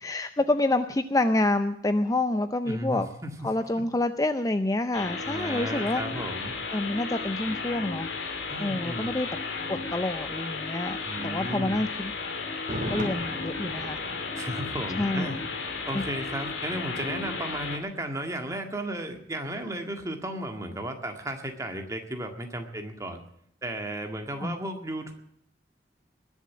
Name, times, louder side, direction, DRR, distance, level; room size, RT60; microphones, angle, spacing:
voice 1, 0.0-3.1 3.4-6.0 6.7-8.1 8.6-9.3 9.7-11.0 11.2-12.1 12.9-14.0 15.0-15.3 15.9-16.0 24.4-24.6, left 2 dB, 20° left, 9 dB, 0.5 m, -27 dB
voice 2, 2.7-3.3 5.2-6.5 8.5-9.2 11.0-11.8 14.3-15.4 15.9-23.2 23.6-25.1, right 1 dB, 15° right, 4 dB, 1.9 m, -34 dB
sound 1, 4.9-17.8, left 4 dB, 90° left, 2.4 m, -34 dB
Thunder, 12.5-16.4 16.7-16.8, equal, 45° right, 3.1 m, -38 dB
20.5 x 7.2 x 8.5 m, 0.70 s
head